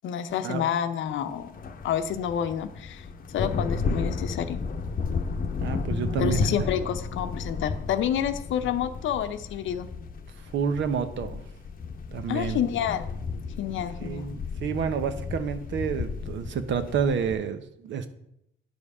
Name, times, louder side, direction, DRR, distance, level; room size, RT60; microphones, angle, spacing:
voice 1, 0.0-1.6 1.8-3.1 3.3-4.6 6.2-9.9 12.3-13.1 13.6-14.3, left 9 dB, 75° left, 10 dB, 0.7 m, -29 dB
sound 1, 1.3-17.4, left 4 dB, 45° left, 0.8 m, -33 dB
voice 2, 5.6-6.5 10.5-11.4 12.1-12.6 14.0-18.1, right 7 dB, 70° right, 10 dB, 0.9 m, -29 dB
9.8 x 5.3 x 4.8 m, 0.77 s
cardioid pair, 90°, 20 cm